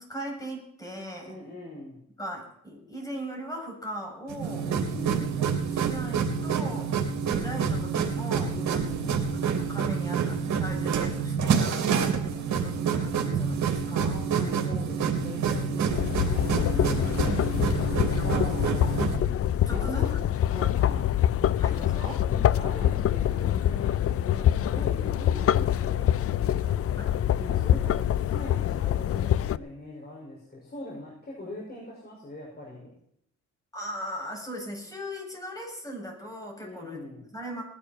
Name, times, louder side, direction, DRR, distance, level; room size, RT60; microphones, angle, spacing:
voice 1, 0.0-1.3 2.2-4.7 5.4-6.9 7.2-8.9 9.3-14.2 16.7-18.5 19.7-20.2 20.5-20.7 21.6-22.2 27.0-27.1 33.7-37.6, equal, 10° left, 0 dB, 7.5 m, -39 dB
voice 2, 1.2-2.0 4.7-5.6 8.5-9.3 14.1-17.2 18.2-19.2 19.7-20.1 20.5-21.1 22.3-26.8 27.3-32.9 36.6-37.2, left 1 dB, 30° left, -4 dB, 6.4 m, -41 dB
sound 1, 4.3-19.2, right 6 dB, 65° right, 3.0 m, -27 dB
sound 2, 15.8-29.6, left 11 dB, 50° left, 0.5 m, -25 dB
19.5 x 11.5 x 4.6 m, 0.69 s
cardioid pair, 90°, 30 cm